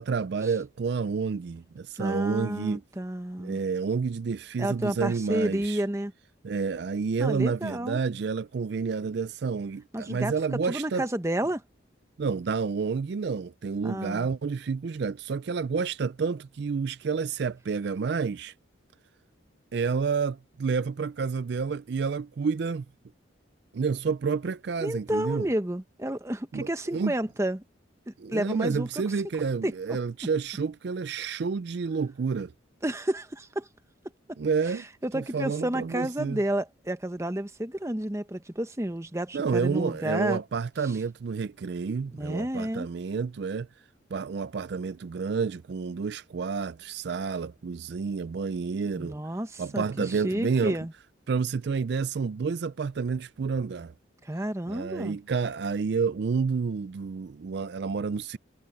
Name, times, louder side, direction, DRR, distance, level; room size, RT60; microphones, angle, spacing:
voice 1, 0.0-2.8 3.4-5.8 6.4-11.0 12.2-18.5 19.7-22.8 23.7-25.5 26.5-27.1 28.2-32.5 34.4-34.8 35.1-36.4 39.3-43.7 44.1-49.2 49.6-50.8 51.3-53.9 54.7-58.4, right 5 dB, 55° right, 0.4 m, -29 dB
voice 2, 2.0-3.6 4.6-6.1 7.2-8.0 9.9-11.6 13.8-14.3 24.8-27.6 28.1-29.0 29.6-29.7 32.8-33.7 34.7-40.4 42.1-42.9 49.0-50.9 54.2-55.2, right 1 dB, 15° right, 0.9 m, -31 dB
head